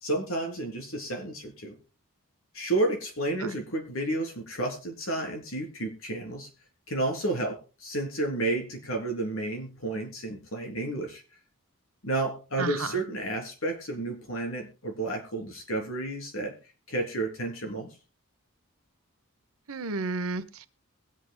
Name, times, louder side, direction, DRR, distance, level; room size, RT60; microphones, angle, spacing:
voice 1, 0.0-1.8 2.5-6.5 6.9-11.2 12.0-16.5 16.9-17.9, right 2 dB, 75° left, 3 dB, 3.4 m, -31 dB
voice 2, 12.6-13.0 19.7-20.7, right 3 dB, 85° right, 13 dB, 0.9 m, -32 dB
22.0 x 8.4 x 2.2 m, 0.32 s
head